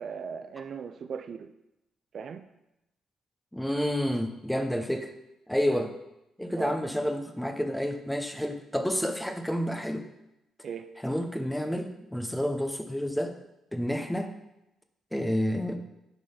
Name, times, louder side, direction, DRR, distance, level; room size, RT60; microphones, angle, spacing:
voice 1, 0.0-1.5 2.1-2.4 5.7-5.9 6.6-6.8 10.6-10.9, right 6 dB, 55° right, 8 dB, 0.5 m, -38 dB
voice 2, 3.5-5.1 5.5-5.9 6.4-10.1 11.0-13.4 13.7-14.3 15.1-15.8, equal, 5° left, 6 dB, 0.9 m, -29 dB
11.5 x 3.9 x 5.0 m, 0.91 s
cardioid pair, 90°, 0 cm